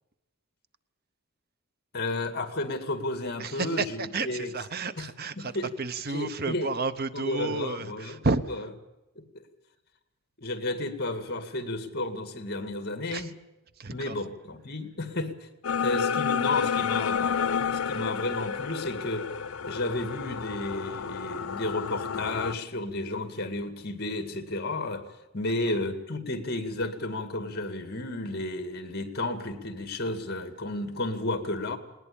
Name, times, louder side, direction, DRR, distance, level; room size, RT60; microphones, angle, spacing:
voice 1, 1.9-3.8 4.2-4.5 5.4-5.7 6.1-6.7 7.1-8.2 9.2-9.4 10.4-13.3 13.9-15.5 15.8-19.3 19.6-25.0 25.3-31.8, left 2 dB, 45° left, 8 dB, 2.1 m, -32 dB
voice 2, 3.4-8.6 13.1-13.3 13.7-14.3, right 3 dB, 45° right, 12 dB, 0.8 m, -31 dB
sound 1, 15.6-22.5, left 7 dB, 75° left, 0.8 m, -30 dB
20.0 x 19.5 x 8.7 m, 1.0 s
head